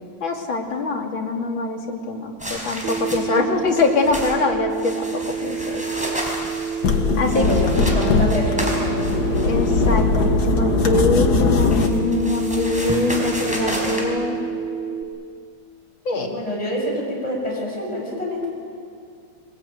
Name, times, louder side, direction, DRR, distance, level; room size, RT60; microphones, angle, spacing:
voice 1, 0.2-5.9 7.2-7.4 9.4-14.4 16.1-16.3, left 3 dB, 75° left, 2 dB, 3.1 m, -23 dB
sound 1, 2.4-3.4 3.7-4.4 4.7-9.9 11.2-14.0, equal, 5° right, 4.5 m, -31 dB
Telephone, 2.8-15.0, right 6 dB, 85° right, 1.9 m, -29 dB
sound 2, 6.8-11.9, left 4 dB, 55° left, 1.9 m, -20 dB
voice 2, 7.1-9.1 16.1-18.5, left 1 dB, 15° left, -3 dB, 6.9 m, -26 dB
23.0 x 20.5 x 9.2 m, 2.3 s
omnidirectional pair, 2.2 m